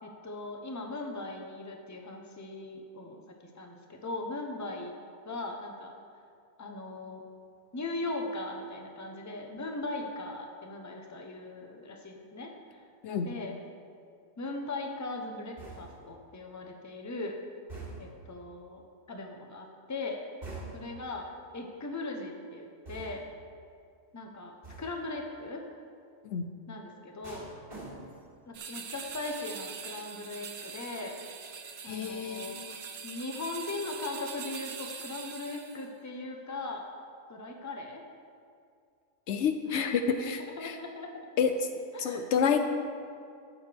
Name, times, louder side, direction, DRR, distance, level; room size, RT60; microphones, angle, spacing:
voice 1, 0.0-3.2 3.5-5.0 5.2-5.9 6.6-7.2 7.7-12.8 13.2-13.5 14.4-17.4 18.0-18.8 19.1-20.2 20.7-23.2 24.1-25.6 26.7-27.5 28.5-31.1 31.8-32.8 33.0-36.9 37.3-38.0 39.7-41.1 41.9-42.2, left 2 dB, 15° left, 2 dB, 0.8 m, -39 dB
sound 1, 15.6-16.1 17.7-18.3 20.4-21.0 22.9-23.4 24.6-25.1 27.2-28.4 28.7-29.1, right 3 dB, 35° right, 3.0 m, -45 dB
sound 2, 28.5-35.9, right 6 dB, 60° right, 0.9 m, -43 dB
voice 2, 31.8-32.7 39.3-40.8 41.4-41.7 42.0-42.6, left 6 dB, 70° left, 7 dB, 0.9 m, -29 dB
12.5 x 8.5 x 3.4 m, 2.3 s
omnidirectional pair, 1.3 m